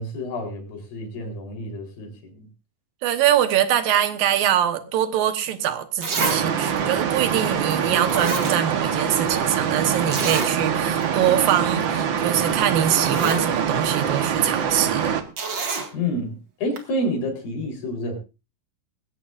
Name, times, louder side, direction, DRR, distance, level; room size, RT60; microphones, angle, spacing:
voice 1, 0.0-2.5 15.9-18.2, left 1 dB, 90° left, 1 dB, 5.8 m, -29 dB
voice 2, 3.0-15.1, right 10 dB, 85° right, 9 dB, 3.0 m, -23 dB
Zipper (clothing), 5.5-5.6 6.0-6.4 6.8-6.9 7.7-7.8 8.1-9.0 9.3-9.4 10.1-10.5 11.0-11.1 11.4-11.6 12.5-12.6 12.9-13.4 15.4-15.9 16.8-16.9, right 4 dB, 40° right, 2.2 m, -27 dB
sound 1, 6.2-15.2, right 8 dB, 65° right, 1.2 m, -24 dB
20.5 x 16.0 x 2.6 m, 0.30 s
omnidirectional pair, 4.0 m